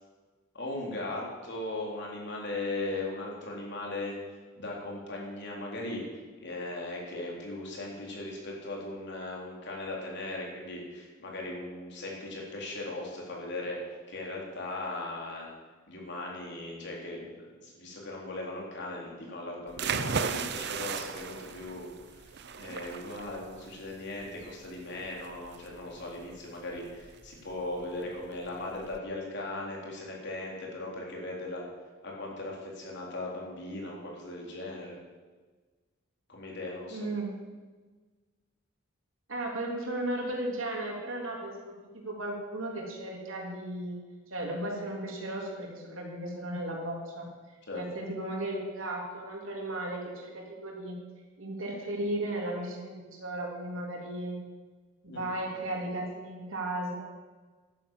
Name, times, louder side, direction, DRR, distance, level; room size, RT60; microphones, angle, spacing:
voice 1, 0.5-4.2 4.6-15.5 15.9-17.2 17.5-31.6 32.0-35.0 36.3-37.1 47.7-47.8 55.1-55.2, left 2 dB, 60° left, -2 dB, 3.8 m, -38 dB
sound 1, 19.7-29.0, right 6 dB, 55° right, 0.7 m, -37 dB
voice 2, 36.9-37.3 39.3-44.0 44.3-51.0 51.4-54.4 55.0-57.0, right 1 dB, 80° right, -1 dB, 3.5 m, -35 dB
11.5 x 10.0 x 7.4 m, 1.3 s
head